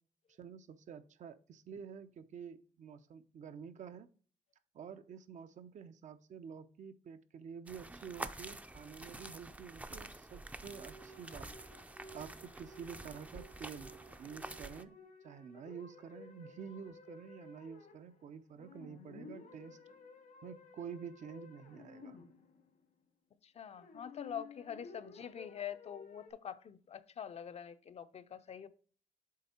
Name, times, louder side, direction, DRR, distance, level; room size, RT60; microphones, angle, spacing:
voice 1, 0.4-4.1 4.7-11.5 12.1-13.9 14.2-15.0 15.2-19.8 20.4-22.2, right 7 dB, 65° right, 0.6 m, -49 dB
sound 1, 7.7-14.8, right 2 dB, 10° right, 0.4 m, -48 dB
sound 2, 10.7-18.3 18.6-22.7 23.8-26.3, left 3 dB, 80° left, 1.6 m, -55 dB
voice 2, 23.4-28.7, left 8 dB, 50° left, 0.5 m, -45 dB
7.5 x 3.6 x 4.2 m
cardioid pair, 95°, 13 cm